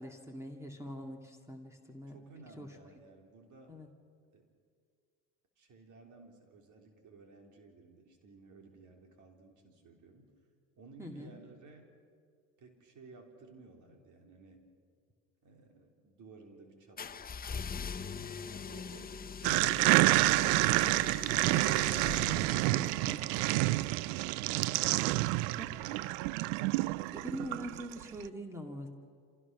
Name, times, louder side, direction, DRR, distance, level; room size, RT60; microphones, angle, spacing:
voice 1, 0.0-2.2 2.6-2.8 3.7-3.9 11.0-11.3 22.2-22.3 22.7-23.2 25.6-25.7 27.1-28.9, equal, 10° right, 3 dB, 2.2 m, -43 dB
voice 2, 2.1-3.8 4.3-4.5 5.6-10.3 10.8-11.9 12.6-14.7 15.4-21.1 27.1-27.3, right 3 dB, 55° right, 3 dB, 3.5 m, -56 dB
sound 1, 17.0-22.9, left 6 dB, 25° left, 0.8 m, -42 dB
sound 2, 19.4-28.0, right 19 dB, 80° right, 0.5 m, -28 dB
27.0 x 16.0 x 6.1 m, 2.1 s
supercardioid pair, 85°, 35 cm